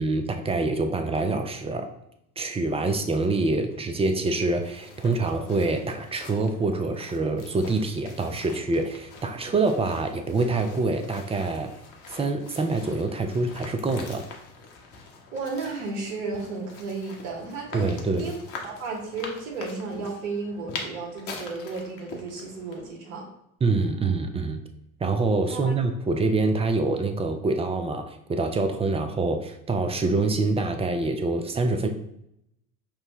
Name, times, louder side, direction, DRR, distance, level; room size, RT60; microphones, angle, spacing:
voice 1, 0.0-1.9 2.4-11.7 12.1-14.3 17.7-18.3 23.6-24.6 25.0-31.9, right 3 dB, 15° right, 6 dB, 0.4 m, -26 dB
sound 1, 4.3-22.9, left 4 dB, 50° left, 1.0 m, -44 dB
voice 2, 15.3-18.4 18.6-23.3 25.5-25.8, right 3 dB, 70° right, 1 dB, 1.2 m, -34 dB
5.9 x 2.1 x 3.0 m, 0.78 s
hypercardioid pair, 65°, 42 cm